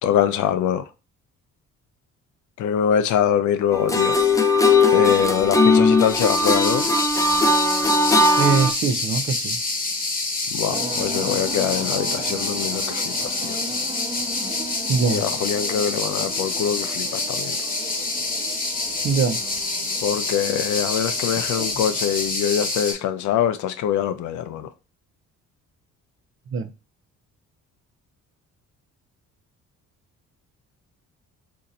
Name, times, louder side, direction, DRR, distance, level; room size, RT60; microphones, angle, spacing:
voice 1, 0.0-0.9 2.6-4.2 4.9-6.9 10.5-13.6 15.0-17.7 20.0-24.7, left 9 dB, 75° left, 0.5 m, -24 dB
sound 1, 3.7-8.7, left 3 dB, 10° left, 0.4 m, -18 dB
sound 2, 6.0-22.9, left 3 dB, 30° left, 1.1 m, -27 dB
voice 2, 8.4-9.6 14.9-15.2 19.0-19.4 21.3-21.4 26.5-26.7, right 5 dB, 45° right, 0.5 m, -22 dB
sound 3, 10.7-22.3, right 2 dB, 20° right, 1.0 m, -37 dB
2.9 x 2.6 x 3.9 m
cardioid pair, 90°, 30 cm